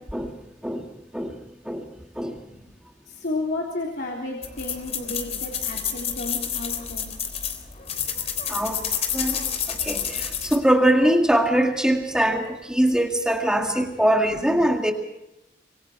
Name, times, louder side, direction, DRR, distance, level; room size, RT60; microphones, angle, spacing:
voice 1, 3.1-7.1, left 2 dB, 60° left, -2 dB, 3.5 m, -32 dB
sound 1, 4.4-10.6, left 8 dB, 35° left, 3.5 m, -29 dB
voice 2, 8.5-8.8 9.1-14.9, right 1 dB, 5° right, 2 dB, 2.1 m, -22 dB
26.0 x 24.0 x 4.5 m, 0.89 s
head